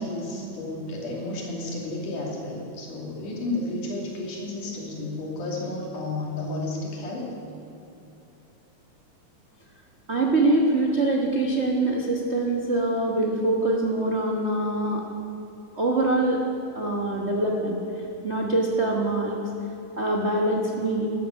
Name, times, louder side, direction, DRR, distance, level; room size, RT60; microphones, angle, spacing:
voice 1, 0.0-7.3, left 2 dB, 80° left, -3 dB, 4.3 m, -32 dB
voice 2, 10.1-15.0 15.8-16.4 16.7-17.8 18.2-19.4 20.0-21.1, right 2 dB, 85° right, -2 dB, 0.6 m, -24 dB
14.5 x 12.0 x 6.7 m, 2.7 s
omnidirectional pair, 3.6 m